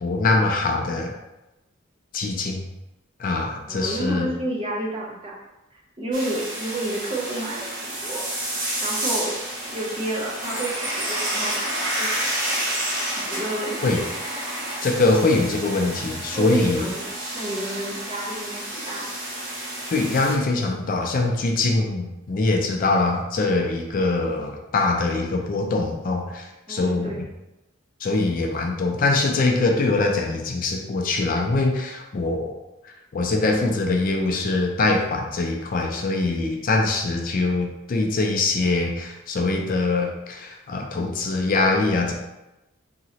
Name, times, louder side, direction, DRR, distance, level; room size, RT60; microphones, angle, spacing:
voice 1, 0.0-1.1 2.1-2.6 3.2-4.3 13.8-14.0 14.8-16.9 19.9-27.2 28.0-32.6 32.8-42.1, left 3 dB, 45° left, 1 dB, 0.4 m, -23 dB
voice 2, 3.7-5.3 5.7-8.2 8.8-9.4 9.7-12.6 13.2-13.8 16.3-17.0 17.3-19.0 26.7-27.3, right 1 dB, 25° right, -3 dB, 0.6 m, -30 dB
sound 1, 6.1-20.4, right 1 dB, 65° right, 0.9 m, -30 dB
2.9 x 2.8 x 2.8 m, 0.99 s
head